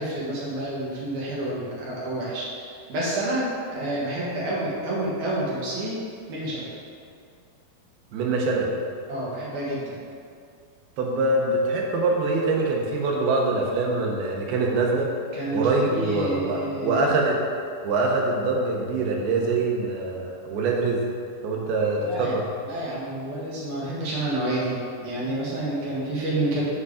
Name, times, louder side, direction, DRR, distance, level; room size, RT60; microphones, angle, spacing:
voice 1, 0.0-6.0 6.3-6.7 9.1-10.0 15.3-17.1 22.1-22.3 22.6-26.6, right 1 dB, 60° right, -7 dB, 2.7 m, -29 dB
voice 2, 8.1-8.7 11.0-15.1 15.5-17.4 17.8-21.0 21.4-22.5, right 3 dB, 85° right, -1 dB, 2.8 m, -24 dB
8.4 x 4.6 x 4.9 m, 2.3 s
omnidirectional pair, 4.4 m